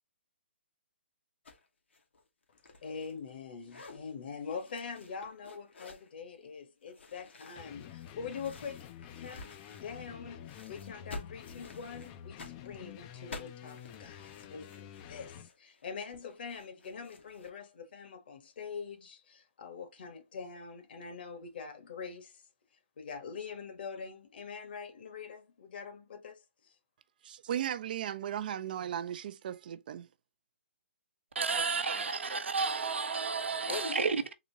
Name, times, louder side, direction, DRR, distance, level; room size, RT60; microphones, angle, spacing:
sound 1, 1.5-1.6 1.9-3.4 3.6-4.0 4.5-6.1 6.9-10.2 10.4-17.5, left 3 dB, 75° left, 1.2 m, -51 dB
voice 1, 2.8-8.9 9.2-22.4 23.0-26.7 31.5-31.6 31.9-32.0 33.7-34.1, left 5 dB, 55° left, 1.3 m, -44 dB
sound 2, 7.6-15.5, left 10 dB, 30° left, 0.4 m, -49 dB
voice 2, 27.2-30.1, right 10 dB, 45° right, 0.4 m, -36 dB
voice 3, 31.3-34.2, right 5 dB, 80° right, 0.8 m, -31 dB
3.8 x 2.9 x 2.8 m
hypercardioid pair, 140°, 6 cm